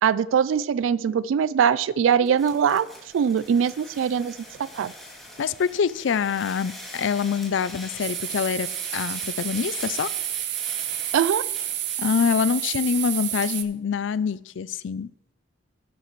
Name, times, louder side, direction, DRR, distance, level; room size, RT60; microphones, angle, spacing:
voice 1, 0.0-2.9 3.1-4.9 11.1-11.4, right 7 dB, 85° right, 19 dB, 0.3 m, -22 dB
sound 1, 2.2-12.1, equal, ahead, 2.5 m, -42 dB
voice 2, 5.4-8.7 8.9-10.1 12.0-15.1, left 6 dB, 70° left, 17 dB, 0.4 m, -25 dB
sound 2, 8.0-13.6, right 12 dB, 60° right, 0.7 m, -30 dB
12.0 x 9.9 x 3.1 m, 0.85 s
head